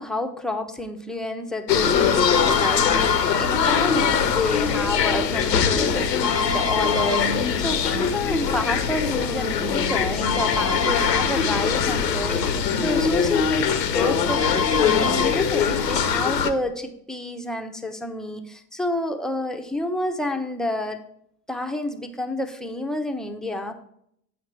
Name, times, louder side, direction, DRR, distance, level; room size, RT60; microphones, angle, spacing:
voice 1, 0.0-21.0 21.5-23.8, left 1 dB, ahead, 5 dB, 0.6 m, -29 dB
sound 1, 1.7-16.5, left 6 dB, 85° left, 0.7 m, -22 dB
8.4 x 5.1 x 4.5 m, 0.72 s
figure-of-eight pair, 60°, 48 cm